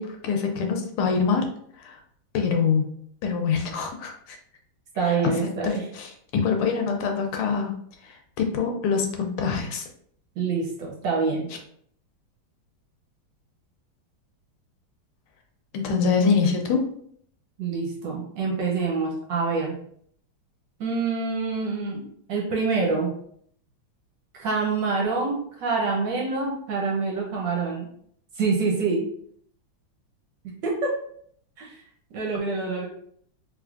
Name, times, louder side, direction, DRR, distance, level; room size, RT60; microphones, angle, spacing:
voice 1, 0.0-1.5 1.8-2.0 2.3-2.8 3.2-4.4 5.0-5.2 5.4-7.7 8.0-9.8 15.7-16.8, left 5 dB, 80° left, 3 dB, 1.5 m, -25 dB
voice 2, 4.9-5.8 10.4-11.5 17.6-19.8 20.8-22.0 22.3-23.1 24.4-27.9 28.4-29.0 30.6-30.9 31.6-31.7 32.1-32.9, right 4 dB, 65° right, -1 dB, 1.3 m, -26 dB
3.5 x 3.4 x 2.4 m, 0.64 s
omnidirectional pair, 2.4 m